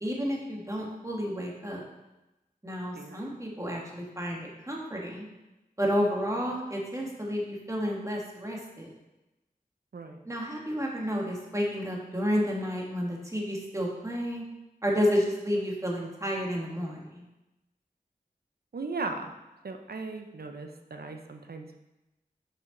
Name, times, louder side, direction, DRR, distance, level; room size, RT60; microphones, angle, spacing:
voice 1, 0.0-1.8 2.6-5.3 5.8-8.9 10.2-14.4 14.8-17.2, equal, 20° right, -2 dB, 1.4 m, -31 dB
voice 2, 18.7-19.3 19.6-21.8, right 3 dB, 80° right, 5 dB, 0.6 m, -37 dB
5.7 x 5.5 x 3.8 m, 1.0 s
wide cardioid pair, 50°, 16 cm